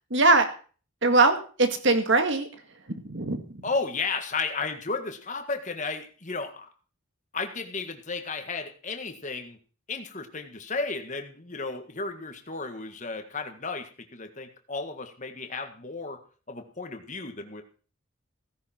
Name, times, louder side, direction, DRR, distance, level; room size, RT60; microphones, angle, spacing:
voice 1, 0.1-0.5 1.0-2.5 3.1-3.4, right 3 dB, 55° right, 7 dB, 1.9 m, -21 dB
voice 2, 3.6-6.7 7.3-9.6 9.9-16.2 16.5-17.6, left 4 dB, 35° left, 6 dB, 1.7 m, -33 dB
16.5 x 10.5 x 4.5 m, 0.39 s
head